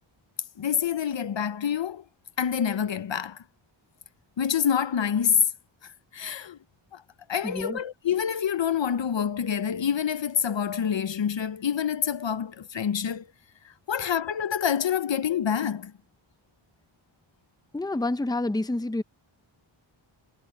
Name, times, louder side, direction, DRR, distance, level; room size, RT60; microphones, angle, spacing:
voice 1, 0.6-2.0 2.4-3.4 4.4-5.5 6.1-6.6 6.9-7.0 7.3-13.3 13.6-15.9, left 8 dB, 65° left, 0.8 m, -27 dB
voice 2, 7.4-7.8 17.7-19.0, left 2 dB, 10° left, 0.7 m, -28 dB
wide cardioid pair, 60°, 49 cm